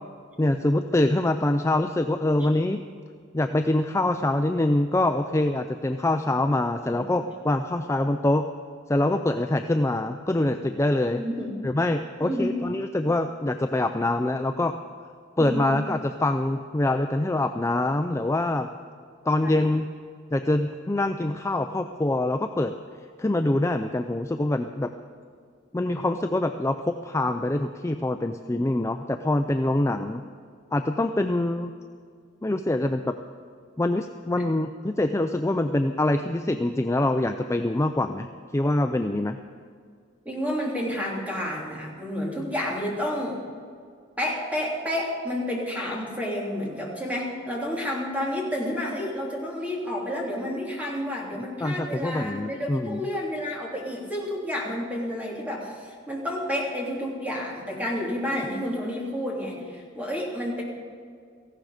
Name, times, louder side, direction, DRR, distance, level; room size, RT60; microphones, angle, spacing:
voice 1, 0.4-2.8 3.3-8.4 8.9-11.2 11.6-14.7 15.4-18.7 19.3-19.9 20.3-22.7 23.2-24.9 25.7-30.2 30.7-31.7 32.4-33.1 33.8-38.3 38.5-39.4 51.6-53.1, left 1 dB, 15° left, 7 dB, 0.4 m, -24 dB
voice 2, 11.1-11.5 12.2-12.5 15.4-15.7 19.4-19.7 40.2-43.4 44.2-60.6, left 1 dB, 10° right, -3 dB, 3.1 m, -30 dB
18.0 x 15.0 x 5.1 m, 2.1 s
head